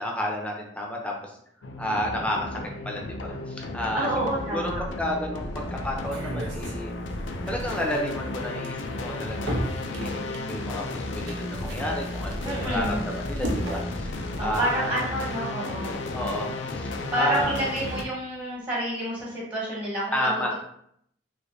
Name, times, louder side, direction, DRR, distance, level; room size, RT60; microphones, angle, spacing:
voice 1, 0.0-1.3 1.8-4.1 4.5-6.9 7.5-15.1 16.1-17.6 20.1-20.5, equal, 5° left, 0 dB, 0.6 m, -31 dB
sound 1, 1.6-18.0, left 2 dB, 85° left, 0.5 m, -33 dB
voice 2, 3.9-4.8 12.4-13.1 14.4-16.0 17.1-20.5, right 1 dB, 25° right, -7 dB, 1.1 m, -29 dB
sound 2, 6.0-13.9, right 1 dB, 70° right, 0.7 m, -36 dB
3.2 x 3.1 x 2.6 m, 0.69 s
head